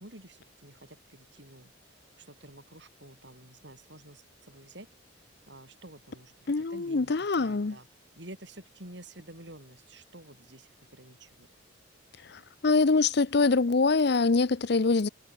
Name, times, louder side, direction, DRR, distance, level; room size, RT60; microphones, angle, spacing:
voice 1, 0.0-4.9 5.5-7.1 7.4-7.9 8.1-11.5, right 1 dB, 60° right, 7.4 m, -50 dB
voice 2, 6.5-7.8 12.3-15.1, left 3 dB, 55° left, 0.6 m, -24 dB
head